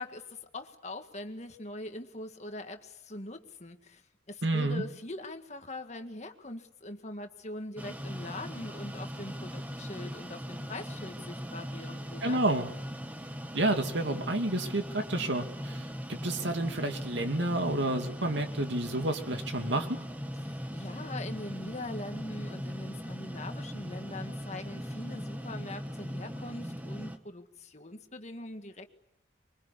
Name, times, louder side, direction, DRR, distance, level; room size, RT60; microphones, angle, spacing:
voice 1, 0.0-12.4 20.4-28.9, left 2 dB, 35° left, 6 dB, 1.9 m, -42 dB
voice 2, 4.4-4.8 12.2-12.7 13.5-20.0, right 1 dB, 70° right, 6 dB, 2.5 m, -30 dB
sound 1, 7.8-27.2, equal, 10° right, 1.3 m, -39 dB
25.0 x 23.5 x 8.4 m, 0.79 s
head